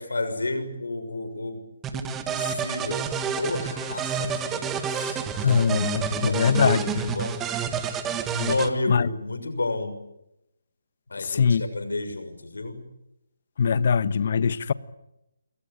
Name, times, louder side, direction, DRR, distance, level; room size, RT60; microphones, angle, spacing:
voice 1, 0.0-1.6 1.9-5.8 6.1-8.1 8.5-9.9 11.1-12.8, left 2 dB, 80° left, 6.3 m, -32 dB
sound 1, 1.8-8.7, right 7 dB, 10° right, 1.7 m, -29 dB
voice 2, 5.4-7.2 8.3-8.5 8.9-9.1 11.2-11.6 13.6-14.7, left 6 dB, 50° left, 1.2 m, -22 dB
28.0 x 23.0 x 8.9 m
figure-of-eight pair, 155°, 0 cm